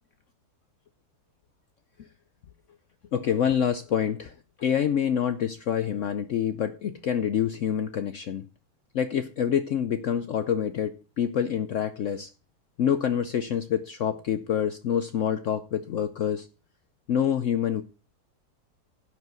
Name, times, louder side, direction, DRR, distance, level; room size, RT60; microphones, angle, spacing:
voice 1, 3.1-8.5 8.9-12.3 12.8-16.5 17.1-17.8, left 9 dB, 60° left, 0.9 m, -27 dB
11.0 x 4.9 x 7.8 m
omnidirectional pair, 1.7 m